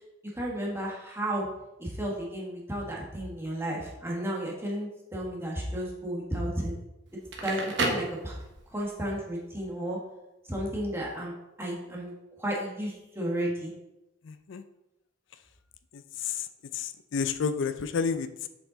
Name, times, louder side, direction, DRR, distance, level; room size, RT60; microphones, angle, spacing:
voice 1, 0.3-1.5 1.8-6.7 7.4-8.4 8.7-10.0 10.5-11.3 11.6-12.1 12.4-13.7, right 1 dB, 15° right, -3 dB, 1.5 m, -33 dB
Crackle, 7.1-8.8, right 2 dB, 65° right, 1.2 m, -32 dB
voice 2, 14.2-14.6 15.9-16.5 16.7-18.5, left 6 dB, 65° left, 11 dB, 0.4 m, -31 dB
7.1 x 5.5 x 3.9 m, 0.93 s
head